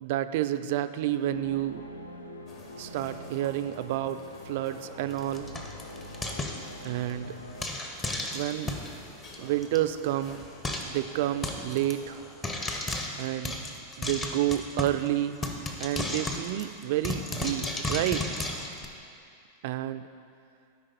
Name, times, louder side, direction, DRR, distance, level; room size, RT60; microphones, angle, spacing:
voice 1, 0.0-1.8 2.8-4.2 4.5-5.5 6.8-7.3 8.3-8.7 9.4-10.4 10.8-12.2 13.2-13.7 14.0-15.4 15.8-18.2 19.6-20.0, right 13 dB, 50° right, 12 dB, 0.3 m, -29 dB
sound 1, 1.3-7.7, left 1 dB, 80° left, 0.5 m, -44 dB
sound 2, 2.5-12.3, left 2 dB, 40° left, 1.3 m, -51 dB
Frying (food), 5.1-7.1 7.6-8.9 9.3-9.4 9.6-9.8 10.0-10.1 10.6-11.0 11.4-11.9 12.4-15.1 15.4-18.9, left 2 dB, 20° left, 0.8 m, -34 dB
12.0 x 5.0 x 4.2 m, 2.4 s
figure-of-eight pair, 90°, 0 cm